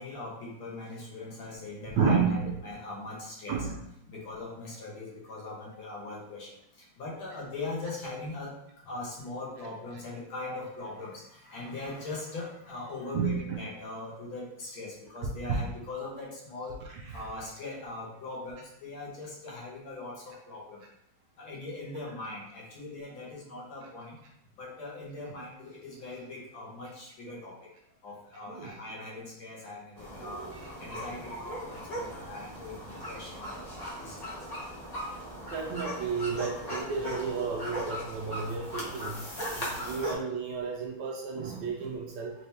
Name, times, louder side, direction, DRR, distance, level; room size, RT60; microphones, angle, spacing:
voice 1, 0.0-3.7 4.1-8.5 8.8-16.8 17.1-20.8 21.4-24.2 24.6-27.7 28.0-30.5 30.8-34.2 39.8-40.1, left 2 dB, 80° left, -4 dB, 1.9 m, -41 dB
voice 2, 2.0-2.5 3.5-3.8 13.1-13.6 15.5-15.6 17.1-17.3 28.5-28.8 30.2-30.6 35.5-39.2 39.6-42.3, right 5 dB, 75° right, 0 dB, 1.1 m, -31 dB
sound 1, 30.0-40.1, equal, 35° left, 0.6 m, -38 dB
3.9 x 2.8 x 3.3 m, 0.77 s
omnidirectional pair, 2.2 m